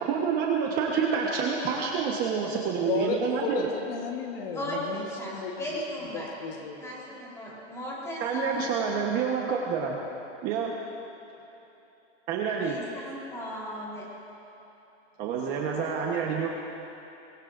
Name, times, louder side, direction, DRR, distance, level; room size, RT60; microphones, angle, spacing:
voice 1, 0.1-3.7 8.2-10.0 10.4-10.7 12.3-12.8 15.2-16.5, right 6 dB, 25° right, -1 dB, 1.1 m, -28 dB
voice 2, 2.9-5.6 6.1-6.8, left 5 dB, 55° left, 2 dB, 1.5 m, -33 dB
voice 3, 4.5-6.3 6.8-8.7 12.6-14.1, equal, 10° left, -5 dB, 3.8 m, -36 dB
23.5 x 20.0 x 2.6 m, 3.0 s
supercardioid pair, 165°, 36 cm